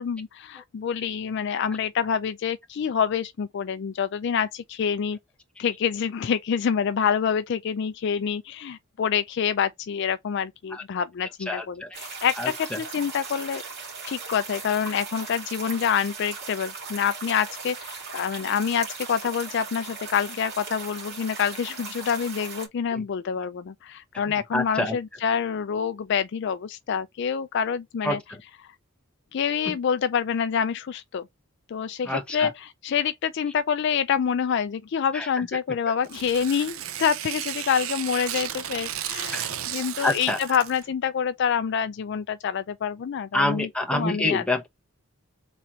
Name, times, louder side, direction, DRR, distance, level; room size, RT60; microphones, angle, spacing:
voice 1, 0.0-5.2 5.6-13.6 14.1-28.2 29.3-31.3 31.7-44.4, left 7 dB, 55° left, 0.3 m, -27 dB
voice 2, 11.5-11.9 12.4-12.8 22.9-23.0 24.5-25.0 28.0-28.4 29.7-29.8 32.0-32.5 35.1-35.3 39.3-39.5 40.0-40.6 43.3-44.7, left 1 dB, 5° left, 0.9 m, -27 dB
sound 1, 11.9-22.7, right 4 dB, 50° right, 1.9 m, -38 dB
Tearing, 36.0-40.9, right 11 dB, 80° right, 0.5 m, -33 dB
3.9 x 3.0 x 4.2 m
head